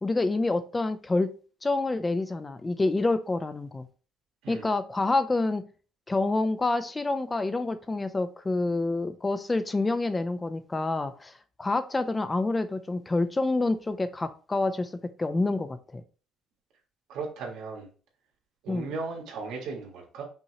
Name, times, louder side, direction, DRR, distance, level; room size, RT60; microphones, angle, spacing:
voice 1, 0.0-1.3 1.6-3.8 4.5-5.6 6.1-11.3 11.6-14.9 15.2-16.0 18.7-18.9, left 2 dB, 15° left, 0.3 m, -27 dB
voice 2, 17.1-17.9 18.6-20.2, right 4 dB, 90° right, 1.6 m, -36 dB
5.5 x 2.8 x 2.9 m
cardioid pair, 140°, 0 cm